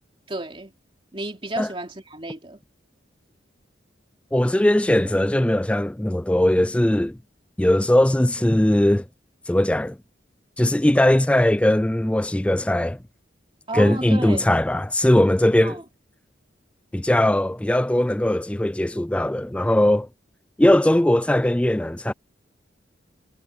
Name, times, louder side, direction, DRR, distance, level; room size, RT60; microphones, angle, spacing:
voice 1, 0.3-0.7 1.1-2.6 13.7-14.5 15.6-15.8, right 2 dB, 30° right, 3.0 m, -32 dB
voice 2, 4.3-7.2 7.6-9.1 9.5-10.0 10.6-13.0 13.7-15.8 16.9-20.1 20.6-22.1, left 1 dB, 5° left, 0.3 m, -19 dB
head